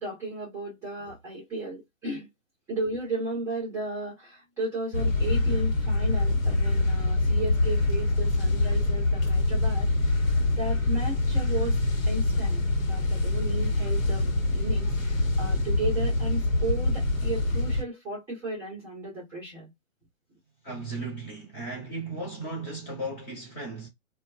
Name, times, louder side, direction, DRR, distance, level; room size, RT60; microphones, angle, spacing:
voice 1, 0.0-2.3 2.7-10.2 10.5-11.8 12.0-19.7, right 2 dB, 5° right, 0.8 m, -35 dB
sound 1, 4.9-17.8, left 2 dB, 80° left, 1.1 m, -25 dB
voice 2, 20.6-23.9, right 2 dB, 20° left, 1.1 m, -36 dB
2.3 x 2.3 x 2.4 m
hypercardioid pair, 145°, 40 cm